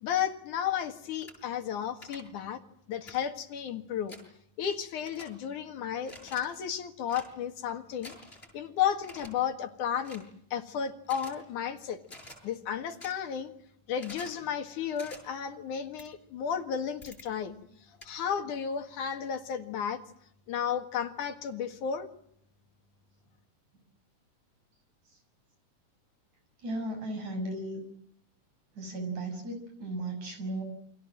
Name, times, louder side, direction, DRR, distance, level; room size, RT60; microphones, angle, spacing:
voice 1, 0.0-2.6 2.9-4.2 4.6-8.2 8.5-10.2 10.5-12.0 12.4-13.5 13.9-17.5 18.0-20.0 20.5-22.1, left 8 dB, 70° left, 7 dB, 3.2 m, -33 dB
sound 1, 1.2-1.3 2.0-2.2 3.1-3.2 4.1-4.2 5.0-5.3 6.0-6.4 7.1-7.3 8.0-8.5 9.0-9.3 10.0-10.3 11.0-11.3 12.0-12.4 13.0-13.1 14.0-14.4 15.0-15.2 16.0-16.1 17.0-17.3 18.0-18.1, left 1 dB, 15° left, 7.9 m, -47 dB
voice 2, 26.6-27.8 28.8-30.6, right 2 dB, 60° right, 6 dB, 8.1 m, -35 dB
29.0 x 24.5 x 7.6 m, 0.71 s
omnidirectional pair, 3.8 m